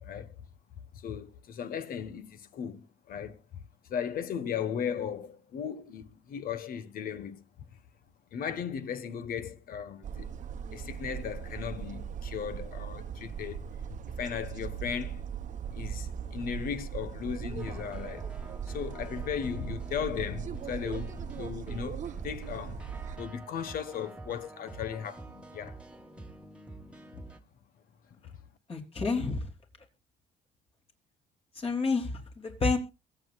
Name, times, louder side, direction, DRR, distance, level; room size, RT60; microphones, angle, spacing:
voice 1, 0.0-0.3 0.9-3.4 3.9-7.4 8.3-10.3 10.7-13.7 14.2-15.2 15.7-18.3 18.7-22.8 23.1-25.8, left 8 dB, 60° left, 1.4 m, -36 dB
sound 1, 10.0-23.2, right 8 dB, 45° right, 1.0 m, -39 dB
sound 2, 17.6-27.4, right 2 dB, 5° right, 1.6 m, -48 dB
voice 2, 28.7-29.5 31.5-32.8, left 4 dB, 35° left, 3.4 m, -29 dB
22.5 x 8.0 x 2.4 m
cardioid pair, 110°, 17 cm